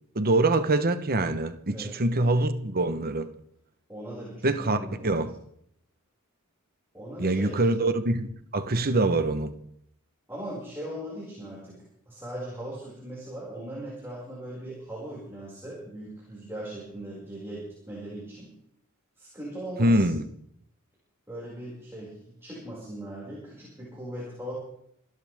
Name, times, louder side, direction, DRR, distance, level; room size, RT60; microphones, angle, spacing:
voice 1, 0.1-3.3 4.4-5.3 7.2-9.5 19.8-20.2, right 2 dB, 45° right, 1.1 m, -24 dB
voice 2, 1.7-2.3 3.9-5.3 6.9-7.6 10.3-11.8 12.1-18.5 19.2-20.1 21.3-24.5, right 1 dB, 10° right, 6.0 m, -39 dB
27.0 x 12.5 x 3.6 m
head